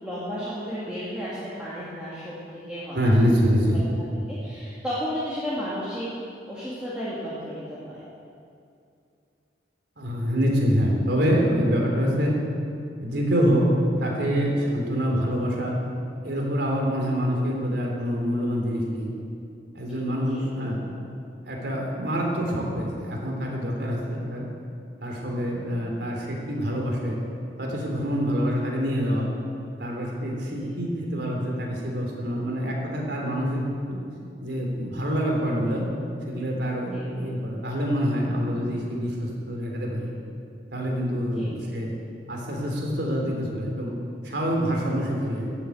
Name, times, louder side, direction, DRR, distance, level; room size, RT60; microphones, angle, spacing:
voice 1, 0.0-2.3 2.7-3.0 3.7-3.9 4.3-6.1 6.5-8.0 20.3-20.7 30.6-30.7 36.9-37.2 41.3-41.7, equal, 5° right, -10 dB, 2.5 m, -33 dB
voice 2, 2.9-3.8 10.0-12.3 13.0-13.7 14.0-15.8 16.2-19.1 19.7-20.8 21.4-24.5 25.0-27.2 27.6-29.3 29.8-33.6 33.9-34.0 34.4-35.9 36.3-40.1 40.7-41.9 42.3-43.9 44.2-45.5, equal, 70° right, -1 dB, 3.3 m, -26 dB
14.5 x 8.3 x 8.6 m, 2.5 s
head